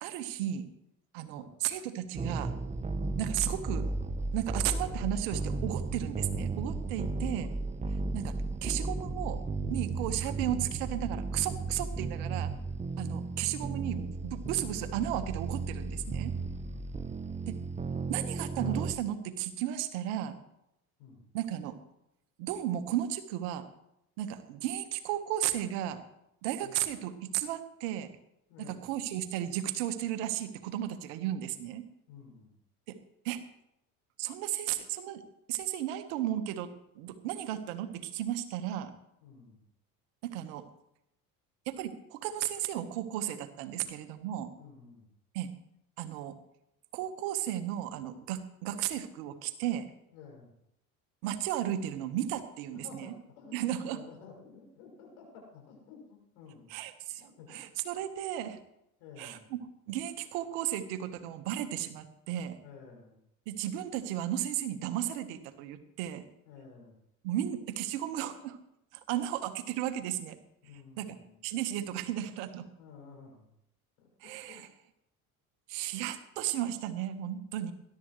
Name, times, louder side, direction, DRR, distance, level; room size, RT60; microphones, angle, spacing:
voice 1, 0.0-0.7 1.1-2.5 3.2-3.9 4.3-7.5 8.1-8.3 8.6-9.4 9.7-12.5 13.0-16.3 17.5-17.6 18.1-20.4 21.3-21.8 22.4-23.6 24.2-26.0 26.4-28.1 28.6-31.8 32.9-33.0 33.2-33.4 34.2-35.2 35.5-38.9 40.2-40.6 41.7-44.5 45.3-45.5 46.0-46.4 46.9-49.9 51.2-53.1 53.5-54.0 56.7-58.6 59.2-59.4 59.9-62.6 63.5-66.3 67.2-68.6 68.9-70.4 71.0-71.2 71.4-72.7 74.2-74.7 75.7-77.7, right 12 dB, 75° right, 9 dB, 1.6 m, -34 dB
sound 1, 2.2-18.9, right 3 dB, 15° right, 0.8 m, -34 dB
voice 2, 6.9-7.5 16.3-16.9 21.0-21.3 26.6-26.8 28.5-28.9 32.1-32.5 39.2-39.6 44.5-45.1 50.1-50.5 52.7-56.7 57.2-57.6 59.0-59.5 62.6-63.2 66.4-66.9 70.6-71.4 72.7-73.5 74.0-74.6, left 5 dB, 75° left, -1 dB, 6.8 m, -52 dB
20.5 x 12.0 x 3.3 m, 0.81 s
hypercardioid pair, 65°, 43 cm